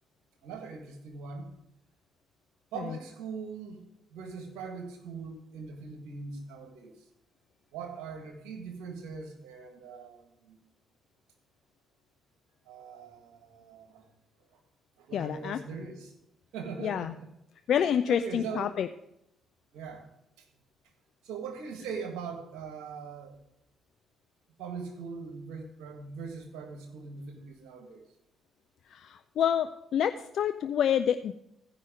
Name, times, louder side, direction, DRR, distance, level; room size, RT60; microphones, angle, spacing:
voice 1, 0.4-1.5 2.7-3.8 4.1-6.9 7.7-10.6 12.7-14.1 15.0-16.1 16.5-17.3 18.1-18.7 19.7-20.0 21.2-23.4 24.6-28.0, right 5 dB, 75° right, 4 dB, 1.6 m, -41 dB
voice 2, 15.1-15.6 16.8-17.1 17.7-18.9 28.9-31.3, left 9 dB, 65° left, 9 dB, 0.4 m, -28 dB
14.5 x 5.5 x 5.0 m, 0.80 s
hypercardioid pair, 50°, 0 cm